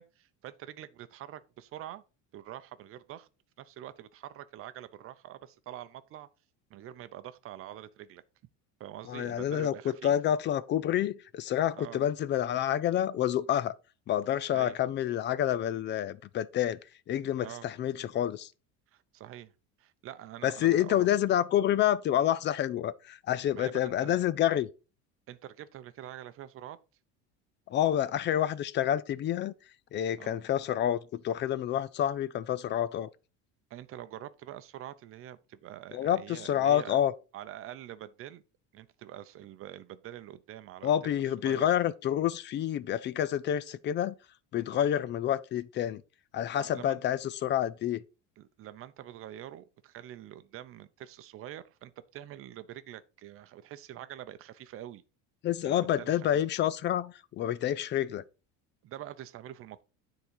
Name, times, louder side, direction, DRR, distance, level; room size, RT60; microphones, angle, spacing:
voice 1, 0.0-2.0 2.3-3.3 3.6-6.3 6.7-8.2 8.8-10.1 11.8-12.0 14.5-14.7 17.4-17.7 18.9-19.5 19.8-21.1 23.6-24.2 25.3-26.8 30.2-30.4 33.7-37.0 37.3-38.4 38.7-41.7 46.6-47.0 48.4-55.0 55.6-56.3 58.8-59.8, right 12 dB, 40° right, 0.7 m, -45 dB
voice 2, 9.1-13.7 14.1-16.8 17.1-18.5 20.4-24.7 27.7-29.5 29.9-33.1 35.9-37.1 40.8-44.1 44.5-46.0 46.3-48.0 55.4-58.2, left 11 dB, 35° left, 0.5 m, -28 dB
9.8 x 3.9 x 4.6 m
cardioid pair, 155°, 33 cm